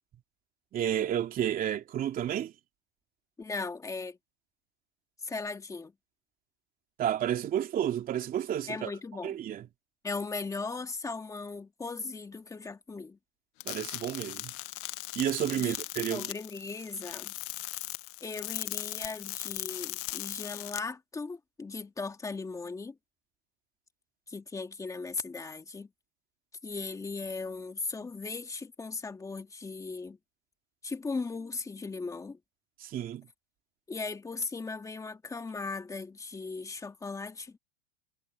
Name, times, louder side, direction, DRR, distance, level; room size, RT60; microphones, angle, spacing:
voice 1, 0.7-2.5 7.0-8.9 9.2-9.7 13.6-14.5 15.1-16.3 32.8-33.3, right 10 dB, 25° right, 3.0 m, -31 dB
voice 2, 3.4-4.2 5.2-5.9 8.7-9.3 10.0-13.2 15.6-15.8 16.1-17.3 18.2-23.0 24.3-25.9 26.6-30.2 30.8-32.4 33.9-37.6, left 4 dB, 10° left, 2.2 m, -38 dB
sound 1, 13.6-20.8, left 22 dB, 45° left, 1.5 m, -38 dB
supercardioid pair, 150°, 33 cm